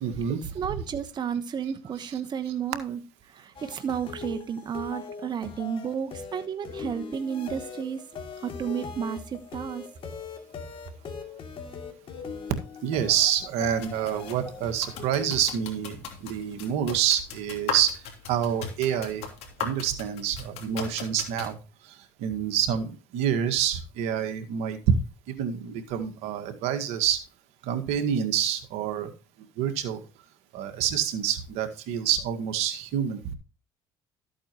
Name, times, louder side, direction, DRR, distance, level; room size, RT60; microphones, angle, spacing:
voice 1, 0.0-0.4 2.0-2.2 12.8-19.2 19.6-21.6 21.8-25.0 25.3-27.2 27.6-29.1 29.6-30.1 30.5-33.3, right 9 dB, 80° right, 1.8 m, -27 dB
voice 2, 0.5-3.0 3.3-8.0 8.4-9.8, right 7 dB, 40° right, 1.2 m, -32 dB
sound 1, 3.6-15.6, left 5 dB, 55° left, 2.8 m, -41 dB
sound 2, 13.7-21.5, left 6 dB, 75° left, 3.3 m, -39 dB
13.0 x 8.6 x 3.0 m
supercardioid pair, 80°, 11 cm